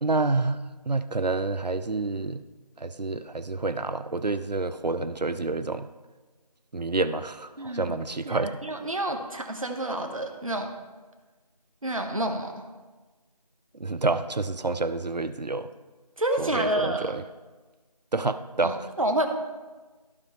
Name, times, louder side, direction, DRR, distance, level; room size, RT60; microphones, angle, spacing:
voice 1, 0.0-2.4 2.8-5.9 6.7-8.6 13.8-15.7 16.4-17.2 18.1-18.9, right 3 dB, 85° right, 12 dB, 0.6 m, -28 dB
voice 2, 7.6-7.9 8.2-10.7 11.8-12.6 16.2-17.1 18.6-19.3, right 1 dB, 55° right, 4 dB, 1.2 m, -29 dB
14.0 x 4.8 x 3.1 m, 1.3 s
figure-of-eight pair, 170°, 21 cm